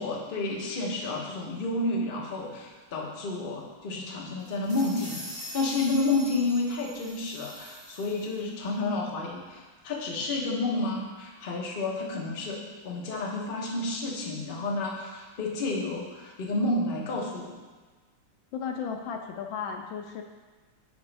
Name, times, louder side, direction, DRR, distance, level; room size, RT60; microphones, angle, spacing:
voice 1, 0.0-5.2 5.5-12.6 12.8-17.5, left 2 dB, 35° left, -2 dB, 0.8 m, -30 dB
sound 1, 4.4-8.4, equal, 75° right, 3.2 m, -43 dB
voice 2, 18.5-20.2, left 6 dB, 75° left, 4 dB, 1.3 m, -34 dB
8.8 x 5.0 x 3.3 m, 1.4 s
omnidirectional pair, 2.2 m